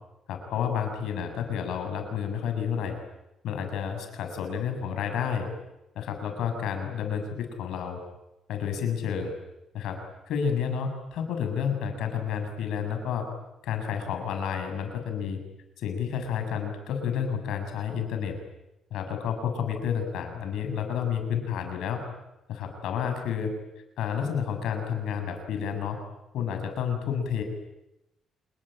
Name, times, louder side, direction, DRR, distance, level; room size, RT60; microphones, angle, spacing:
voice 1, 0.3-3.0 3.4-5.5 5.9-8.0 8.5-9.3 9.7-10.0 10.3-13.2 13.6-15.4 15.8-18.3 18.9-22.0 22.5-23.5 24.0-26.0 26.3-27.4, left 7 dB, 80° left, 6 dB, 6.8 m, -30 dB
27.5 x 21.5 x 9.0 m, 0.94 s
cardioid pair, 90°, 0 cm